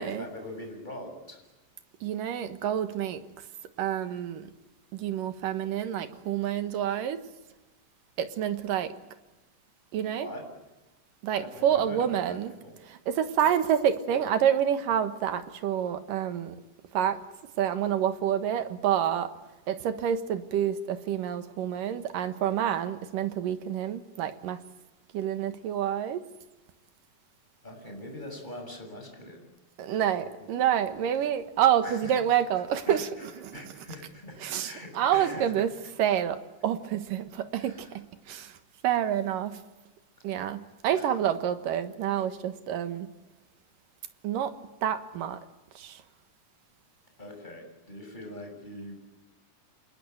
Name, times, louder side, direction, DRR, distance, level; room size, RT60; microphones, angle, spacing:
voice 1, 0.0-1.4 10.0-10.5 11.4-12.8 27.6-29.4 29.9-31.1 31.8-32.2 32.9-33.3 33.5-35.6 37.6-38.0 40.9-41.1 47.2-49.0, left 1 dB, 10° left, 3 dB, 7.0 m, -43 dB
voice 2, 2.0-3.2 3.8-4.5 4.9-7.2 8.2-8.9 9.9-10.3 11.2-12.5 12.9-16.6 16.9-17.2 17.6-19.3 19.7-24.6 25.1-26.2 29.8-33.6 34.4-35.7 36.0-38.5 38.8-39.6 40.2-43.1 44.2-44.5 44.8-45.4 45.8-46.0, right 9 dB, 75° right, 10 dB, 3.0 m, -28 dB
27.5 x 19.5 x 9.3 m, 1.1 s
omnidirectional pair, 4.0 m